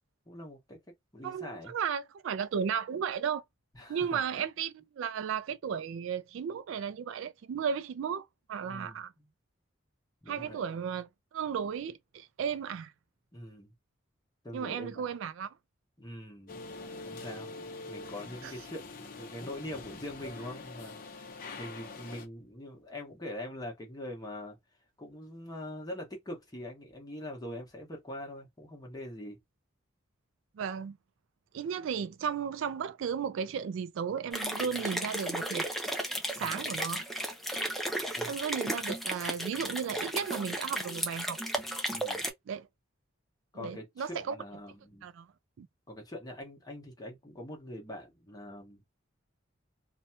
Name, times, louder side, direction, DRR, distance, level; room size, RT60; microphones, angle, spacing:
voice 1, 0.3-0.8 1.1-1.7 3.7-4.5 8.7-9.3 10.2-10.6 13.3-13.7 14.4-15.1 16.0-16.6 17.0-17.5 17.9-24.6 25.0-29.4 36.4-36.6 38.1-38.4 41.9-42.3 43.5-45.1 45.9-48.8, left 1 dB, 20° left, 1.0 m, -43 dB
voice 2, 1.2-3.4 3.9-9.1 10.3-12.9 14.5-15.5 18.4-18.5 30.6-31.0 31.5-35.7 36.4-37.0 38.0-41.4 42.5-42.7 43.5-44.4 45.0-45.3 45.6-45.7, right 7 dB, 75° right, 0.3 m, -34 dB
sound 1, 16.5-22.3, left 3 dB, 45° left, 0.6 m, -44 dB
sound 2, 34.3-42.3, right 1 dB, ahead, 0.4 m, -34 dB
2.7 x 2.2 x 2.7 m
head